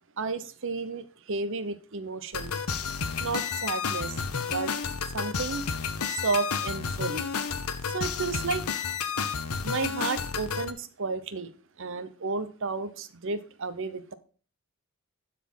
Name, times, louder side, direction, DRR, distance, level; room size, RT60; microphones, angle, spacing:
voice 1, 0.2-2.6 3.2-4.7 5.1-5.6 6.1-7.2 7.9-8.7 9.6-11.5 11.8-14.1, right 4 dB, 60° right, 12 dB, 0.8 m, -32 dB
sound 1, 2.3-10.7, left 6 dB, 80° left, 0.8 m, -31 dB
12.0 x 4.3 x 5.5 m, 0.39 s
head